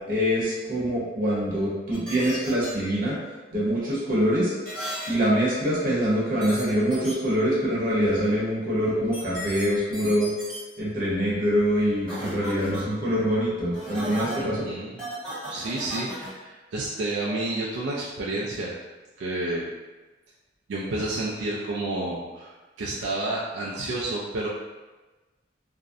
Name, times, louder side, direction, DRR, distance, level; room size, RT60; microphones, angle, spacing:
voice 1, 0.1-3.1 3.5-4.5 5.1-10.3 10.8-14.7, equal, 50° right, -7 dB, 0.8 m, -24 dB
sound 1, 1.9-2.7 4.6-5.1 6.4-6.6 6.9-7.1 9.1-9.6 9.9-10.6 12.1-12.8 13.7-14.4 15.0-16.3, equal, 5° left, 0.8 m, -35 dB
voice 2, 14.4-15.0 15.5-18.7 19.2-19.6 20.7-24.5, right 2 dB, 80° right, -5 dB, 0.3 m, -30 dB
2.5 x 2.0 x 2.4 m, 1.2 s
head